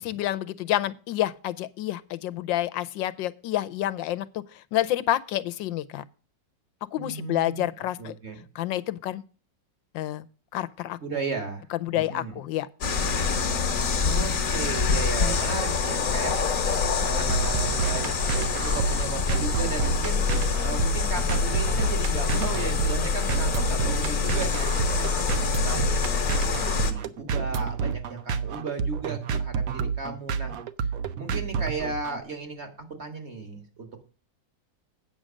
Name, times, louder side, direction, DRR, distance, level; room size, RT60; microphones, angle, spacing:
voice 1, 0.0-4.4 4.7-6.0 6.9-8.2 8.5-9.2 9.9-10.3 10.5-11.0 11.8-12.7, left 14 dB, 90° left, 1.4 m, -28 dB
voice 2, 7.0-7.7 8.0-8.4 11.0-11.7 11.9-12.4 14.0-16.4 16.7-18.2 18.5-25.2 25.6-30.5 31.1-32.7 33.0-34.1, right 4 dB, 35° right, 1.8 m, -35 dB
sound 1, 12.8-26.9, left 5 dB, 50° left, 1.5 m, -26 dB
sound 2, 16.8-32.2, right 6 dB, 65° right, 0.9 m, -30 dB
8.8 x 6.4 x 6.3 m
omnidirectional pair, 2.0 m